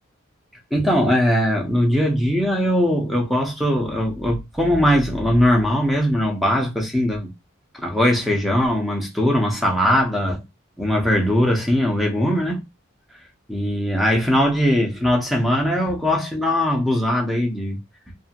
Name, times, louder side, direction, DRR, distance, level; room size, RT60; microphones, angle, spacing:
voice 1, 0.7-7.3 7.7-10.4 10.8-12.6 13.5-17.8, equal, ahead, 0.7 m, -20 dB
2.7 x 2.5 x 2.8 m
head